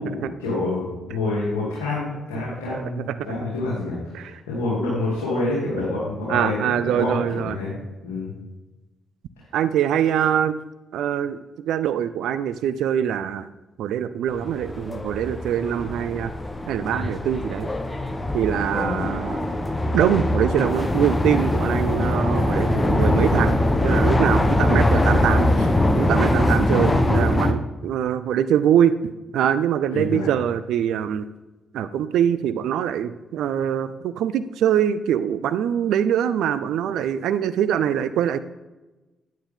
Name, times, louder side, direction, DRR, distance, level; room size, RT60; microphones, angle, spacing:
voice 1, 0.0-7.7 8.0-8.3 9.4-9.5 18.7-19.0 26.7-27.0 29.9-30.3, left 2 dB, 85° left, -8 dB, 2.7 m, -27 dB
voice 2, 2.7-3.2 4.1-4.3 6.3-7.6 9.5-10.6 10.9-11.4 11.7-13.5 13.8-16.3 16.7-17.7 18.3-19.5 19.9-25.7 26.0-28.9 29.3-31.3 31.7-38.4, right 9 dB, 75° right, 13 dB, 0.4 m, -23 dB
sound 1, 14.3-27.5, left 1 dB, 20° left, 1.1 m, -22 dB
9.4 x 9.2 x 3.6 m, 1.1 s
hypercardioid pair, 45°, 0 cm